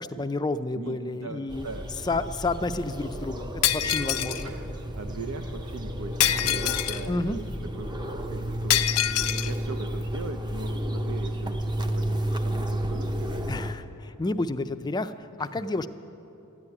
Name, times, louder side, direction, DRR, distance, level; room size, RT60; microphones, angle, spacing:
voice 1, 0.0-1.7 2.0-4.5 7.1-7.4 12.9-13.0 13.5-15.9, left 2 dB, 20° left, 10 dB, 0.4 m, -30 dB
voice 2, 0.7-2.1 4.4-7.4 7.7-8.0 8.3-9.1 9.4-13.5 15.4-15.5, right 4 dB, 75° right, 6 dB, 0.6 m, -40 dB
sound 1, 1.5-13.7, equal, 20° right, 0.6 m, -32 dB
Shatter, 3.6-4.4 6.2-7.1 8.7-9.5, left 12 dB, 80° left, 0.5 m, -25 dB
13.0 x 9.7 x 9.7 m, 2.8 s
head